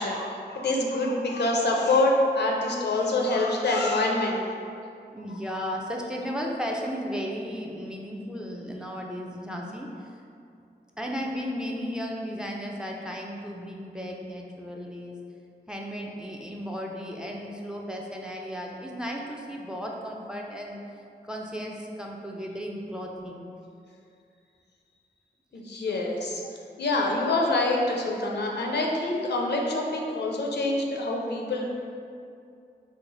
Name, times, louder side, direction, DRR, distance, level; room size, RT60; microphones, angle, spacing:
voice 1, 0.0-4.4 25.5-26.4 26.8-31.7, left 2 dB, 75° left, -1 dB, 0.5 m, -26 dB
voice 2, 5.1-10.2 11.0-15.2 15.7-23.5 25.9-26.0 26.4-26.5, equal, 5° right, 0 dB, 0.4 m, -35 dB
3.1 x 2.0 x 3.8 m, 2.5 s
cardioid pair, 45°, 18 cm